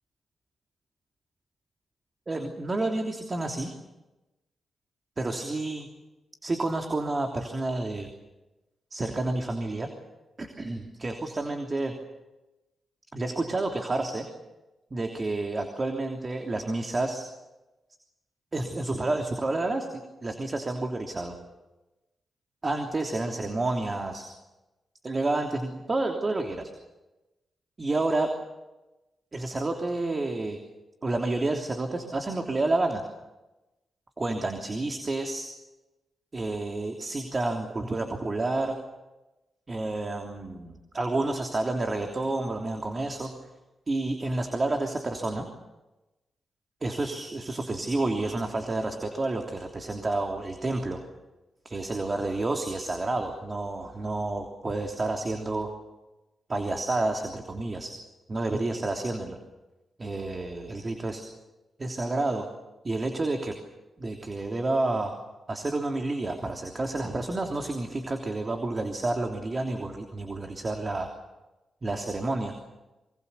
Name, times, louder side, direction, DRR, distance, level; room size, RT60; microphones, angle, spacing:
voice 1, 2.3-3.7 5.2-5.9 6.4-8.1 8.9-9.9 10.4-11.9 13.1-14.3 14.9-17.2 18.5-19.9 20.2-21.4 22.6-24.3 25.0-26.7 27.8-28.3 29.3-30.6 31.0-33.0 34.2-35.5 36.3-38.8 39.7-43.3 43.9-45.5 46.8-51.0 51.6-55.7 56.5-57.9 58.3-59.4 60.0-61.2 61.8-62.5 62.8-63.6 64.0-65.1 65.5-71.1 71.8-72.6, right 2 dB, 40° right, 3 dB, 3.2 m, -29 dB
26.0 x 24.0 x 6.9 m, 1.1 s
supercardioid pair, 50°, 0 cm